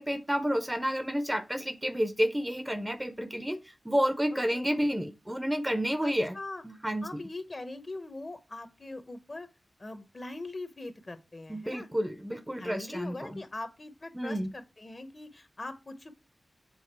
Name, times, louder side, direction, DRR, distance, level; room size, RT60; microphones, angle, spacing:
voice 1, 0.0-6.4 6.6-7.1 11.5-13.4 14.1-14.5, equal, 10° right, 0.6 m, -30 dB
voice 2, 4.3-4.7 6.0-6.6 7.0-9.5 9.8-11.9 12.6-16.1, left 2 dB, 35° left, 1.0 m, -41 dB
7.2 x 3.7 x 4.5 m
wide cardioid pair, 115°, 0 cm